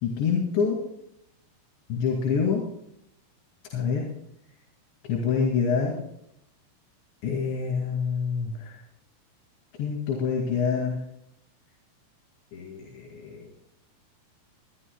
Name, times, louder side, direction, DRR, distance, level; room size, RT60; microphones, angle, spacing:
voice 1, 0.0-0.8 1.9-2.6 3.7-4.1 5.0-5.9 7.2-8.8 9.8-11.0 12.5-13.5, left 6 dB, 90° left, -2 dB, 4.7 m, -26 dB
27.0 x 10.5 x 2.4 m, 0.77 s
omnidirectional pair, 5.0 m